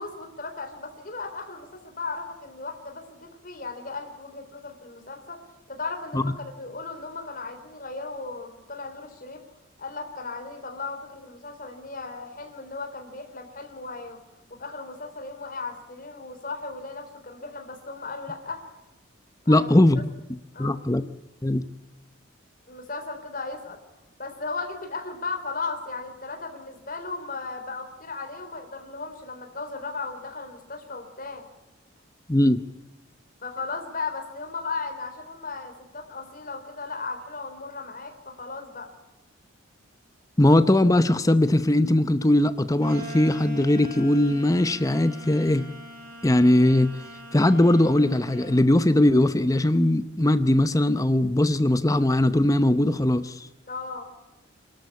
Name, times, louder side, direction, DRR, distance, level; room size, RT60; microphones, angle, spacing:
voice 1, 0.0-9.4 9.8-14.2 14.5-18.7 19.5-19.7 20.5-20.8 22.7-23.8 24.2-31.4 33.4-38.9 53.7-54.1, left 3 dB, 45° left, 5 dB, 3.8 m, -36 dB
voice 2, 19.5-20.0 20.6-21.0 21.4-21.6 32.3-32.6 40.4-45.7 46.2-47.0 47.3-53.5, left 1 dB, 15° left, 12 dB, 0.7 m, -20 dB
sound 1, 42.8-48.6, right 1 dB, 45° right, 5.8 m, -42 dB
27.0 x 13.0 x 8.4 m, 1.0 s
head